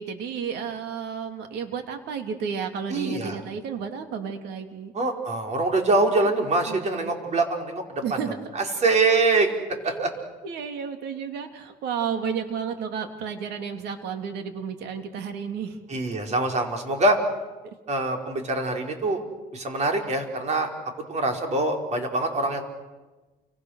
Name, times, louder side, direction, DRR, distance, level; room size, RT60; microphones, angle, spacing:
voice 1, 0.0-4.9 6.2-7.1 8.0-8.4 9.5-9.6 9.8-15.8 17.6-17.7, right 7 dB, 80° right, 6 dB, 3.0 m, -32 dB
voice 2, 2.9-3.4 4.9-8.0 8.5-9.5 9.8-10.1 15.9-17.2 17.9-19.2 19.5-20.7 21.1-22.6, right 2 dB, 40° right, 3 dB, 4.7 m, -24 dB
29.5 x 25.5 x 6.6 m, 1.2 s
cardioid pair, 110°, 17 cm